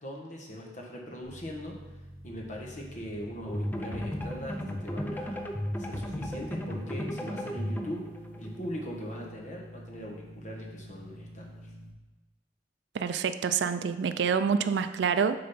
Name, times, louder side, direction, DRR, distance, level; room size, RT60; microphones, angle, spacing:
voice 1, 0.0-1.8 2.2-8.0 8.4-11.7, equal, 40° left, -1 dB, 1.2 m, -40 dB
sound 1, 1.2-11.9, equal, 40° right, 1.6 m, -48 dB
sound 2, 3.5-9.3, equal, 10° left, 0.5 m, -35 dB
voice 2, 12.9-15.4, right 6 dB, 70° right, 11 dB, 0.3 m, -27 dB
6.6 x 3.9 x 5.6 m, 1.2 s
head